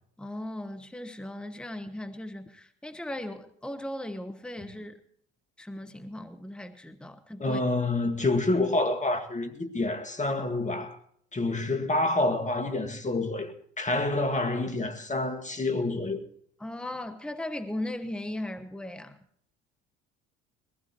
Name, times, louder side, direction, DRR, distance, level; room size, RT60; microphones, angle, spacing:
voice 1, 0.2-5.0 5.6-7.6 16.6-19.2, left 1 dB, 5° left, 1.2 m, -37 dB
voice 2, 7.4-11.0 11.3-16.2, left 2 dB, 20° left, 2.0 m, -28 dB
21.5 x 15.5 x 3.0 m
hypercardioid pair, 65°, 34 cm